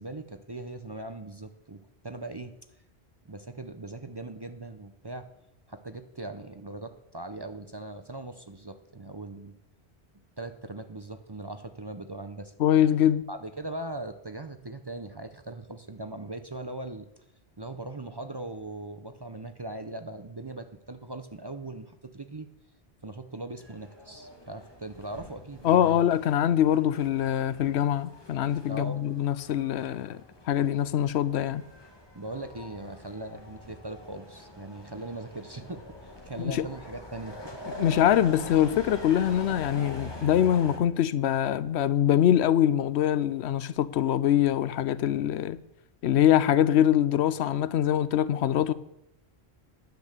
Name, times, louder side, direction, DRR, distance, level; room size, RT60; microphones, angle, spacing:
voice 1, 0.0-2.5 3.2-5.3 5.7-9.5 10.4-12.5 13.3-17.1 17.6-22.5 23.0-26.0 28.7-29.0 32.1-37.4, right 2 dB, 30° right, 0.6 m, -40 dB
voice 2, 12.6-13.2 25.6-30.2 30.5-31.6 36.4-36.7 37.8-45.6 46.0-48.7, left 10 dB, 85° left, 0.9 m, -24 dB
sound 1, 23.6-40.8, equal, 25° left, 1.8 m, -44 dB
10.5 x 8.5 x 6.6 m
omnidirectional pair, 1.1 m